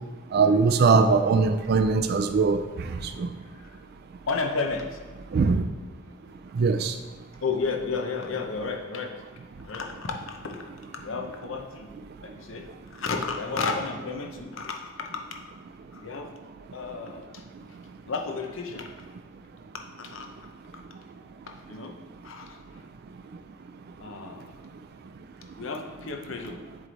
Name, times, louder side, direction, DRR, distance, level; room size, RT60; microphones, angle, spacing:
voice 1, 0.3-2.6 5.3-5.6 6.6-6.9, right 4 dB, 50° right, 8 dB, 0.3 m, -20 dB
voice 2, 3.4-3.8 4.3-5.0 7.4-9.1 9.6-11.9 12.2-15.4 15.9-16.3 16.7-17.4 18.0-18.9 20.0-20.3 21.4-22.0 22.2-22.8 24.0-24.5 25.6-26.6, left 4 dB, 70° left, 3 dB, 0.7 m, -32 dB
7.4 x 3.2 x 4.0 m, 1.3 s
head